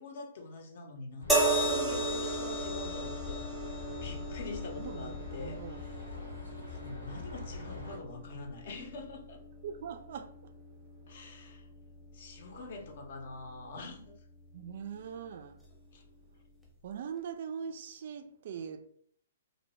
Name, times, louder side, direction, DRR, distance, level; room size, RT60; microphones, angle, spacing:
voice 1, 0.0-3.7 4.0-5.9 6.7-9.4 11.1-11.7 12.1-14.1 15.9-16.0, left 3 dB, 50° left, 0.6 m, -45 dB
sound 1, 1.2-8.0, left 3 dB, 85° left, 0.8 m, -44 dB
sound 2, 1.3-14.6 15.6-15.8, right 2 dB, ahead, 0.7 m, -36 dB
voice 2, 4.8-5.8 9.6-10.3 14.5-15.6 16.8-18.9, right 7 dB, 50° right, 0.3 m, -41 dB
2.7 x 2.1 x 3.0 m
figure-of-eight pair, 120°, 0 cm